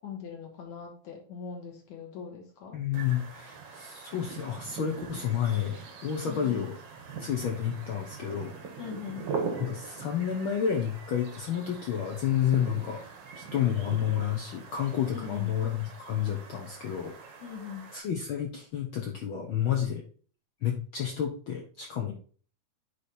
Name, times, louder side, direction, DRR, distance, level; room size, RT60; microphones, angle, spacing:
voice 1, 0.0-2.8 6.3-6.7 8.8-9.3 15.1-15.6 17.4-17.9, left 6 dB, 65° left, 0 dB, 2.5 m, -41 dB
voice 2, 2.7-6.8 7.2-8.6 9.6-13.0 13.4-17.1 17.9-20.0 20.6-22.1, left 9 dB, 90° left, 1 dB, 1.1 m, -30 dB
sound 1, 2.9-18.0, right 5 dB, 60° right, 1.2 m, -42 dB
9.6 x 3.3 x 4.2 m, 0.42 s
omnidirectional pair, 3.6 m